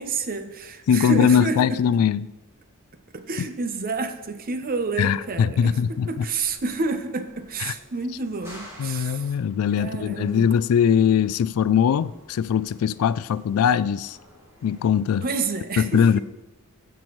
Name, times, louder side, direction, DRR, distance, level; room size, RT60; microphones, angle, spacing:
voice 1, 0.0-1.8 3.1-9.3 9.8-10.5 15.2-16.2, right 4 dB, 40° right, 0.7 m, -29 dB
voice 2, 0.9-2.3 5.0-6.2 7.6-7.7 8.8-14.2 14.6-15.3 15.8-16.2, left 7 dB, 75° left, 0.3 m, -21 dB
sound 1, 4.8-15.2, equal, 10° right, 3.2 m, -51 dB
15.5 x 6.1 x 3.1 m
head